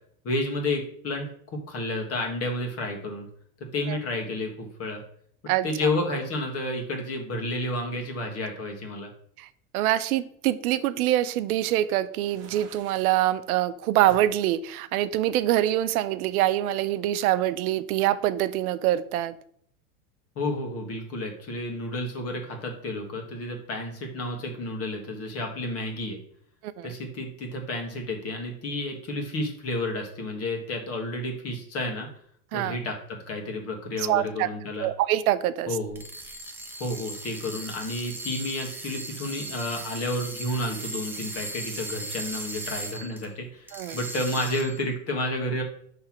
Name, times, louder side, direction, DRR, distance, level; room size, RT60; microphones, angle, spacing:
voice 1, 0.2-3.3 3.7-5.0 5.4-9.1 20.3-26.2 26.8-32.1 32.5-34.9 35.7-36.0 36.8-45.6, left 1 dB, 30° left, 2 dB, 1.5 m, -31 dB
voice 2, 9.7-19.3 26.6-26.9 32.5-32.8 34.0-34.5 34.8-35.7 43.7-44.0, right 13 dB, 75° right, 14 dB, 0.6 m, -25 dB
sound 1, 12.1-13.2 14.1-14.4 15.0-16.1, right 7 dB, 35° right, 1.0 m, -49 dB
sound 2, 35.9-43.3 43.7-44.9, right 2 dB, 5° right, 0.5 m, -37 dB
5.6 x 3.4 x 5.8 m, 0.63 s
supercardioid pair, 125°, 44 cm